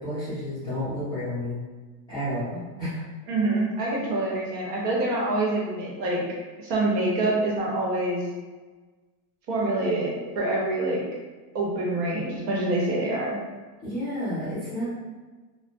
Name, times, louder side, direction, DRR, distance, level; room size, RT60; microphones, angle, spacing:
voice 1, 0.0-1.6 2.1-3.0 13.8-14.8, equal, 10° left, -15 dB, 0.3 m, -31 dB
voice 2, 3.3-6.2 6.6-8.2 9.5-11.0 11.5-13.4, right 2 dB, 75° right, -4 dB, 1.0 m, -26 dB
2.2 x 2.1 x 2.7 m, 1.3 s
supercardioid pair, 160°, 48 cm